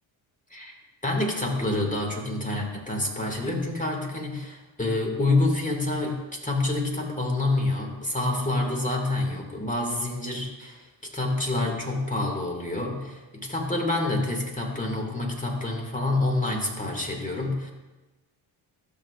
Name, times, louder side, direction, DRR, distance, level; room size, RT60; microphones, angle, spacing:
voice 1, 1.0-10.9 11.1-17.7, left 2 dB, 15° left, 0 dB, 2.2 m, -27 dB
12.5 x 6.5 x 2.5 m, 1.1 s
supercardioid pair, 60°, 50 cm